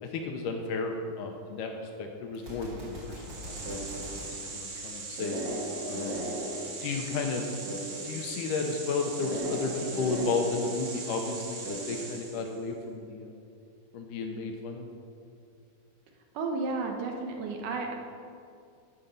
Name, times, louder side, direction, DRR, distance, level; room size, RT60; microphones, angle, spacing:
voice 1, 0.0-3.9 4.3-5.4 5.9-6.3 6.8-7.5 8.0-13.4 13.9-14.9, left 4 dB, 80° left, 3 dB, 2.1 m, -33 dB
Gunshot gunfire, 2.3-5.5, equal, 35° right, 1.8 m, -44 dB
sound 1, 3.0-12.5, right 2 dB, 55° right, 2.0 m, -37 dB
voice 2, 16.3-17.9, right 3 dB, 75° right, 2 dB, 2.2 m, -32 dB
13.0 x 5.6 x 5.2 m, 2.4 s
omnidirectional pair, 4.1 m